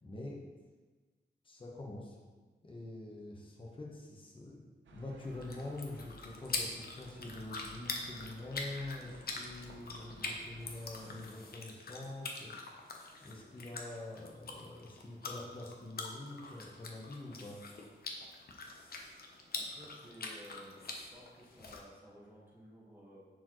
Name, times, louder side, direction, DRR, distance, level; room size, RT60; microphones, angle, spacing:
voice 1, 0.0-0.4 1.4-2.2 2.6-4.6 4.9-12.5 12.8-12.9 13.2-17.6, left 2 dB, 25° left, -2 dB, 1.0 m, -45 dB
sound 1, 4.8-11.3, right 2 dB, 85° right, 0.8 m, -57 dB
sound 2, 5.2-21.8, left 3 dB, 55° left, 0.9 m, -44 dB
voice 2, 19.5-20.8 21.1-23.2, equal, 10° right, -5 dB, 1.6 m, -55 dB
10.0 x 4.5 x 3.1 m, 1.3 s
wide cardioid pair, 150°, 19 cm